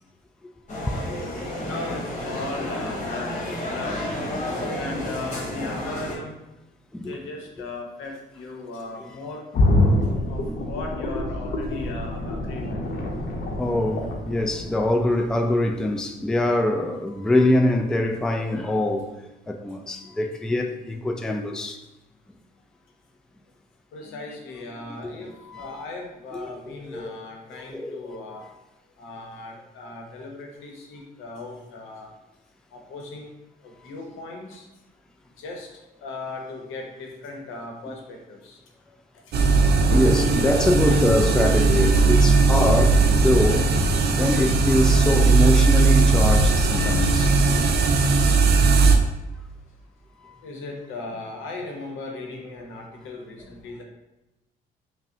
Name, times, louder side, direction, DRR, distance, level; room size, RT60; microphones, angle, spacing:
sound 1, 0.7-6.2, left 1 dB, 40° left, 1.1 m, -31 dB
voice 1, 1.6-4.0 4.7-6.4 7.0-9.4 10.3-12.9 23.9-28.4 29.0-32.1 32.7-33.3 33.6-34.7 35.4-35.7 36.0-38.6 39.4-39.6 45.9-46.1 50.4-53.8, left 3 dB, 90° left, 0.8 m, -37 dB
voice 2, 4.4-5.0 6.9-7.2 10.0-10.1 13.1-13.2 13.6-19.1 19.5-21.8 24.8-25.0 25.5-25.8 26.3-27.1 27.5-28.4 37.9-38.0 39.9-43.7 44.2-47.3 48.8-48.9, left 1 dB, 5° left, 0.3 m, -24 dB
sound 2, 9.5-15.4 15.7-15.8, left 1 dB, 55° left, 0.7 m, -25 dB
sound 3, 39.3-49.0, right 3 dB, 55° right, 0.5 m, -18 dB
5.2 x 2.1 x 2.7 m
cardioid pair, 90°, 20 cm